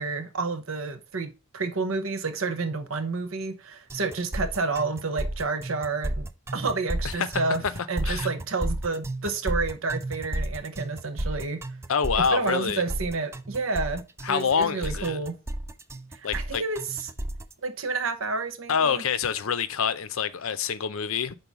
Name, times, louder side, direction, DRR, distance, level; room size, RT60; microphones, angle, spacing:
voice 1, 0.0-6.3 6.5-7.6 7.9-11.6 12.2-14.0 14.3-15.4 16.1-17.1 17.6-19.0, right 3 dB, 70° right, 0.9 m, -30 dB
sound 1, 3.9-17.5, right 1 dB, 10° right, 0.3 m, -32 dB
voice 2, 7.2-8.3 11.9-12.8 14.2-15.2 16.2-16.6 18.7-21.4, left 6 dB, 70° left, 0.6 m, -26 dB
5.4 x 3.9 x 5.9 m
head